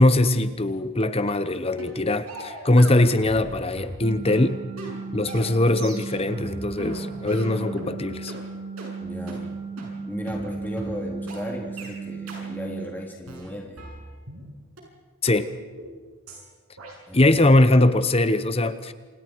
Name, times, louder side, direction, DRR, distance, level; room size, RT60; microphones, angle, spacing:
voice 1, 0.0-4.6 5.1-8.3 15.2-15.5 17.1-18.9, left 1 dB, 25° left, 0.9 m, -21 dB
sound 1, 1.3-1.4 1.8-2.0 2.3-3.5 3.8-7.9 8.3-8.4 8.8-8.9 9.3-9.4 9.8-9.9 10.3-10.4 10.8-10.9 11.3-11.4 11.8-11.9 12.3-12.4 12.8-12.9 13.3-14.4 14.8-14.9 15.3-15.4 15.8-15.9 16.3-16.4 16.8-16.9, right 1 dB, 85° right, 6.9 m, -38 dB
sound 2, 4.0-12.9, right 3 dB, 25° right, 1.6 m, -35 dB
voice 2, 9.0-9.5 10.0-13.8 17.1-17.7, equal, 10° left, 3.1 m, -36 dB
29.0 x 27.5 x 4.7 m
head